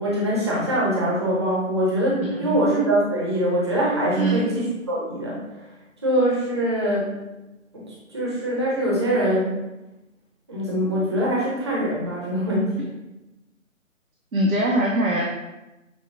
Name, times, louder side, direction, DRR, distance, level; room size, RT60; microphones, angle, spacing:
voice 1, 0.0-5.4 6.0-7.1 7.7-9.6 10.5-12.9, right 1 dB, 20° right, -6 dB, 0.8 m, -23 dB
voice 2, 14.3-15.2, right 1 dB, 85° right, -2 dB, 0.8 m, -22 dB
6.2 x 2.2 x 3.4 m, 1.0 s
figure-of-eight pair, 150°, 41 cm